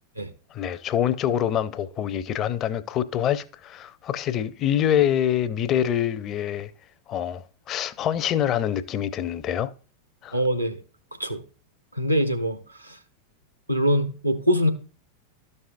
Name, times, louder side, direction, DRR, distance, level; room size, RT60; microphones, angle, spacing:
voice 1, 0.5-6.7 7.1-9.7 10.2-10.4, left 10 dB, 30° left, 0.5 m, -25 dB
voice 2, 10.3-10.8 11.2-11.4 11.9-13.0 13.7-14.7, equal, 90° right, 0.9 m, -23 dB
12.5 x 5.5 x 2.5 m
figure-of-eight pair, 90°, 0 cm